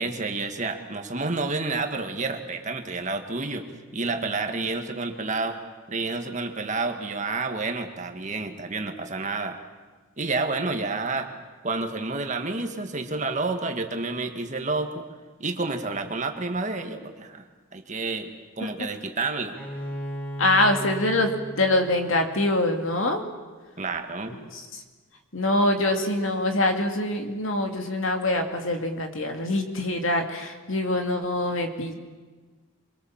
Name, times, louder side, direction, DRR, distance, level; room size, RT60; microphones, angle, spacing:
voice 1, 0.0-3.7 3.9-5.6 5.9-9.6 10.2-11.3 11.6-15.0 15.4-17.4 17.7-18.3 18.6-19.6 23.8-24.4, right 3 dB, 35° right, 5 dB, 1.8 m, -29 dB
Bowed string instrument, 19.6-23.2, right 1 dB, 5° left, 2.5 m, -37 dB
voice 2, 20.4-21.3 21.6-23.2 24.7-24.8 25.3-31.9, left 1 dB, 70° left, 5 dB, 2.4 m, -24 dB
25.0 x 23.5 x 7.3 m, 1.4 s
head